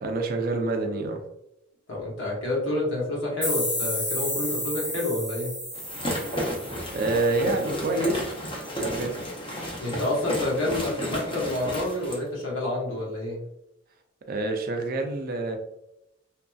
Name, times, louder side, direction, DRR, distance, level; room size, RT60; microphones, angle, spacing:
voice 1, 0.0-1.2 6.3-6.4 6.9-8.2 8.7-9.2 14.3-15.6, right 2 dB, 50° right, 4 dB, 0.4 m, -27 dB
voice 2, 1.9-5.6 9.8-13.4, left 1 dB, 70° left, -4 dB, 1.2 m, -28 dB
sound 1, 3.4-8.1, left 1 dB, 5° left, 1.0 m, -32 dB
sound 2, 5.7-12.2, equal, 25° left, 0.6 m, -32 dB
2.9 x 2.6 x 2.3 m, 0.85 s
head